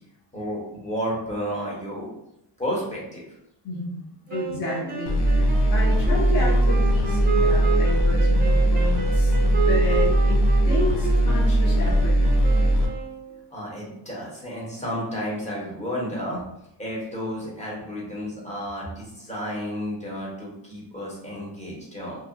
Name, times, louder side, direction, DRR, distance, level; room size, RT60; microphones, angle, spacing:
voice 1, 0.3-2.1 2.6-3.2 13.5-16.4 16.8-22.2, equal, 15° left, -5 dB, 0.9 m, -32 dB
voice 2, 3.6-4.0 4.3-12.2, left 1 dB, 50° left, -4 dB, 0.9 m, -31 dB
sound 1, 4.3-13.5, right 5 dB, 25° right, 0.4 m, -31 dB
sound 2, 5.1-12.9, right 1 dB, 65° left, 0.6 m, -20 dB
2.9 x 2.3 x 2.4 m, 0.80 s
wide cardioid pair, 160°, 44 cm